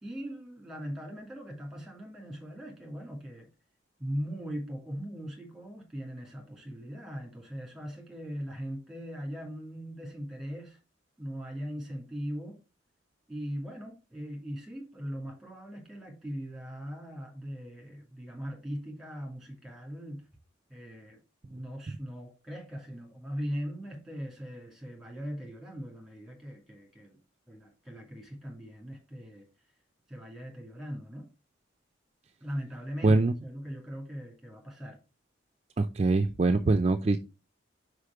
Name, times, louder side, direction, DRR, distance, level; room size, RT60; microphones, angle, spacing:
voice 1, 0.0-3.5 4.0-10.8 11.2-12.6 13.3-20.2 20.7-21.2 21.4-27.2 27.5-29.5 30.1-31.3 32.4-35.0, equal, ahead, 2.4 m, -40 dB
voice 2, 33.0-33.3 35.8-37.2, right 3 dB, 35° right, 0.4 m, -23 dB
5.0 x 5.0 x 4.6 m
head